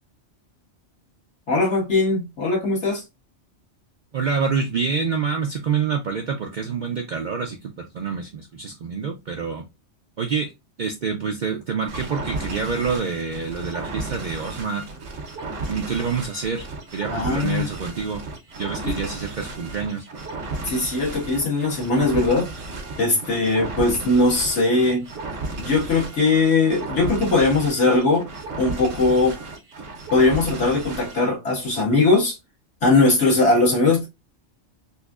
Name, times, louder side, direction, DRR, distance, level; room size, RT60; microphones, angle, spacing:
voice 1, 1.5-3.0 17.1-17.7 18.8-18.9 20.7-22.5 23.0-25.1 25.6-28.3 28.6-29.4 30.1-32.4 32.8-34.1, left 3 dB, 65° left, 1.8 m, -20 dB
voice 2, 4.1-9.7 10.2-10.5 10.8-14.9 15.7-16.7 16.9-18.2 18.6-20.0, right 5 dB, 55° right, 0.5 m, -27 dB
sound 1, 11.9-31.3, right 3 dB, 80° right, 1.2 m, -34 dB
4.1 x 2.5 x 2.3 m
omnidirectional pair, 1.3 m